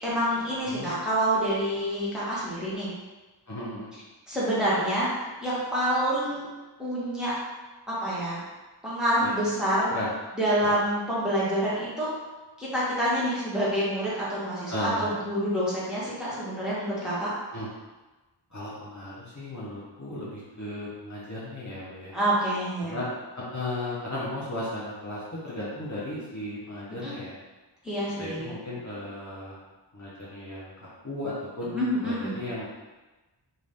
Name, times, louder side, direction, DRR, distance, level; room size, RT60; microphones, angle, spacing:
voice 1, 0.0-2.9 4.3-5.1 5.4-6.5 6.8-7.3 7.9-8.4 8.8-9.9 10.3-12.2 12.6-17.3 22.1-23.0 27.0-27.1 27.8-28.5 31.7-32.3, right 1 dB, ahead, -9 dB, 1.2 m, -27 dB
voice 2, 3.5-3.9 9.2-9.3 9.9-10.1 10.6-10.7 14.7-15.2 17.5-17.7 18.5-22.1 22.8-23.1 23.3-27.4 28.2-29.6 29.9-32.7, left 1 dB, 40° left, -9 dB, 0.9 m, -35 dB
2.6 x 2.6 x 3.4 m, 1.2 s
wide cardioid pair, 45°, 45 cm